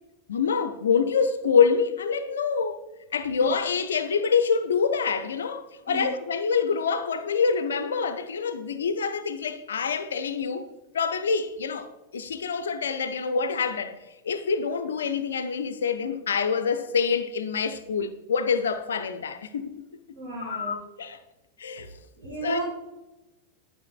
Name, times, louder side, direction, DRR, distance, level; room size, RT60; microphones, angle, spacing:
voice 1, 0.3-2.8 3.1-10.7 10.9-14.0 14.2-19.7 20.4-21.2 21.6-21.9 22.4-22.6, left 5 dB, 65° left, 0.5 m, -26 dB
voice 2, 20.1-20.8 22.2-22.6, right 1 dB, 55° right, 2.3 m, -33 dB
11.0 x 5.5 x 2.3 m
figure-of-eight pair, 90°, 0 cm